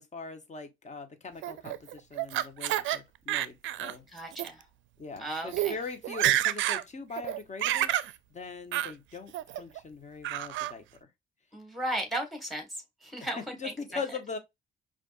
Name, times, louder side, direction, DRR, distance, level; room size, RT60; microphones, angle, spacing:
voice 1, 0.0-4.0 5.0-10.8 13.6-14.4, left 4 dB, 35° left, 1.0 m, -41 dB
Laughter, 1.4-3.0 3.3-3.9 4.3-4.5 5.2-5.3 5.5-5.7 6.0-6.8 7.2-8.1 8.7-8.9 9.3-9.8 10.2-10.7, right 14 dB, 75° right, 0.4 m, -29 dB
voice 2, 4.1-4.6 5.2-5.7 11.5-13.6, right 1 dB, ahead, 1.7 m, -35 dB
5.1 x 2.5 x 2.5 m
cardioid pair, 90°, 20 cm